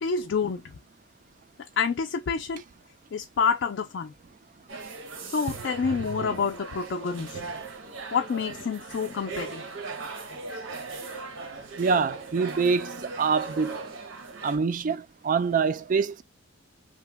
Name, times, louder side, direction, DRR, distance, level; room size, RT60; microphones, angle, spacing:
voice 1, 0.0-0.6 1.8-2.6 3.1-4.1 5.3-7.3 8.1-9.6, left 5 dB, 60° left, 0.3 m, -27 dB
sound 1, 4.7-14.6, right 4 dB, 70° right, 0.8 m, -39 dB
voice 2, 5.9-6.3 11.8-13.8 14.4-16.2, right 5 dB, 40° right, 0.3 m, -26 dB
2.8 x 2.1 x 3.3 m
head